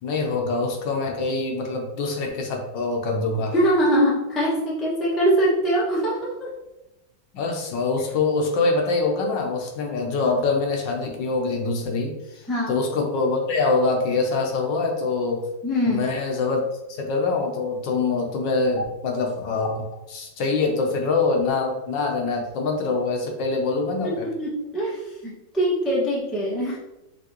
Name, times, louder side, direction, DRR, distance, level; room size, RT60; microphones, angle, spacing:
voice 1, 0.0-3.5 7.3-12.4 12.7-15.5 15.9-16.6 16.9-19.8 20.1-24.3, left 3 dB, 70° left, 1 dB, 1.4 m, -24 dB
voice 2, 3.5-6.5 12.5-12.7 15.6-16.1 24.0-26.8, equal, ahead, -6 dB, 0.5 m, -23 dB
5.9 x 2.9 x 3.0 m, 0.93 s
omnidirectional pair, 2.1 m